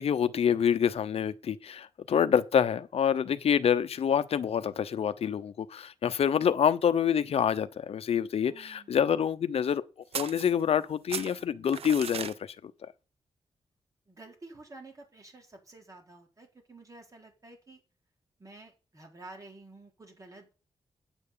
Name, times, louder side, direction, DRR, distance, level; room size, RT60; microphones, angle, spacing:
voice 1, 0.0-9.8 10.1-12.7, left 8 dB, 75° left, 0.8 m, -27 dB
voice 2, 8.5-9.0 14.1-17.8 18.4-20.5, right 2 dB, 35° right, 4.4 m, -50 dB
sound 1, 10.1-10.8 11.1-12.4, right 8 dB, 75° right, 0.6 m, -37 dB
9.7 x 9.2 x 6.9 m
wide cardioid pair, 110°, 10 cm